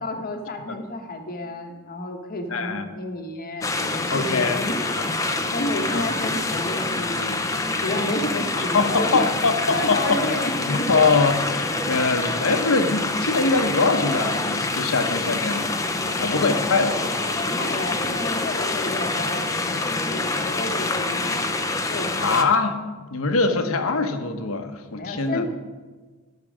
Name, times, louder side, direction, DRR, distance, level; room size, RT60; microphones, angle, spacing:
voice 1, 0.0-5.0 5.5-7.4 7.8-9.3 9.7-11.0 16.0-21.5 21.9-22.4 24.9-25.5, left 1 dB, 45° left, 4 dB, 1.0 m, -31 dB
voice 2, 2.5-2.8 4.1-4.6 5.0-5.1 5.9-6.1 8.6-10.2 10.7-15.8 16.2-16.9 22.2-25.5, left 3 dB, 70° left, 8 dB, 1.0 m, -23 dB
sound 1, 3.6-22.4, left 2 dB, 15° left, 0.6 m, -26 dB
12.0 x 6.0 x 6.3 m, 1.3 s
head